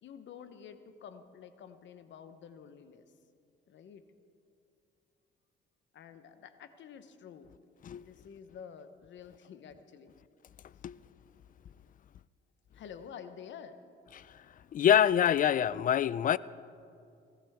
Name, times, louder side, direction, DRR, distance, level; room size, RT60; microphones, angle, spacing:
voice 1, 0.0-3.1 3.7-4.0 5.9-7.5 7.9-10.1 12.7-13.8, left 7 dB, 70° left, 1.0 m, -49 dB
voice 2, 14.7-16.4, left 10 dB, 45° left, 0.4 m, -25 dB
19.5 x 15.5 x 3.6 m
cardioid pair, 90°, 20 cm